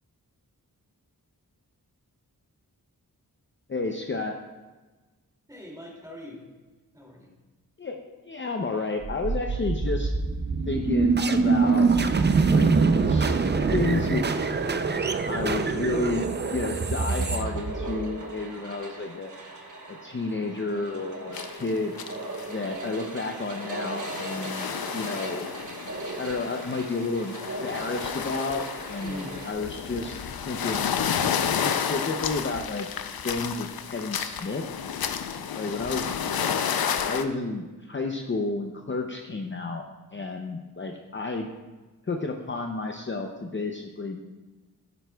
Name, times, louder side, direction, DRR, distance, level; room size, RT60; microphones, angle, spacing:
voice 1, 3.7-4.4 7.8-10.1 10.7-11.9 12.5-12.8 13.1-13.4 13.7-14.2 15.3-19.3 20.0-21.9 22.5-25.6 26.2-27.3 27.6-30.9 31.4-32.9 33.2-34.6 35.5-36.5 37.0-39.8 40.1-41.5 42.1-44.2, left 3 dB, 30° left, 3 dB, 0.6 m, -31 dB
voice 2, 5.5-6.4 6.9-7.3 29.0-29.4 35.5-36.1, left 1 dB, 10° right, -2 dB, 2.5 m, -43 dB
sound 1, 9.0-18.2, right 4 dB, 30° right, 0.5 m, -24 dB
sound 2, 12.6-29.5, right 2 dB, 55° right, 1.2 m, -39 dB
sound 3, 21.3-21.6 21.9-22.5 22.9-23.0 23.6-37.2, left 7 dB, 75° left, 0.6 m, -31 dB
10.0 x 9.2 x 2.3 m, 1.3 s
wide cardioid pair, 65°, 36 cm